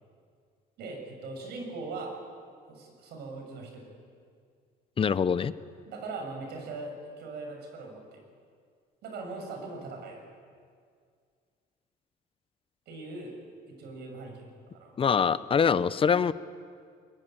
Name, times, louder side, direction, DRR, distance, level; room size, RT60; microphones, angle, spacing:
voice 1, 0.8-2.2 2.6-3.9 5.9-8.2 9.0-10.2 12.9-13.3 13.7-15.0, right 3 dB, 75° right, 3 dB, 6.6 m, -40 dB
voice 2, 5.0-5.5 15.0-16.3, left 6 dB, 30° left, 16 dB, 0.8 m, -24 dB
22.0 x 21.5 x 9.0 m, 2.1 s
cardioid pair, 110°, 17 cm